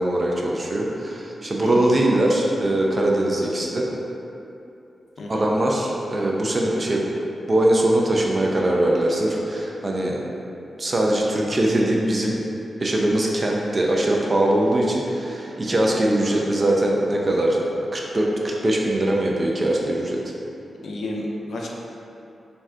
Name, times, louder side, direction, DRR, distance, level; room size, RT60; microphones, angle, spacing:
voice 1, 0.0-3.9 5.3-7.0 7.5-10.2 10.8-12.4 12.8-17.6 17.9-20.2, right 1 dB, 40° right, -2 dB, 0.4 m, -21 dB
voice 2, 20.8-21.7, left 1 dB, 75° left, -2 dB, 0.4 m, -31 dB
2.7 x 2.3 x 3.2 m, 2.8 s
cardioid pair, 50°, 0 cm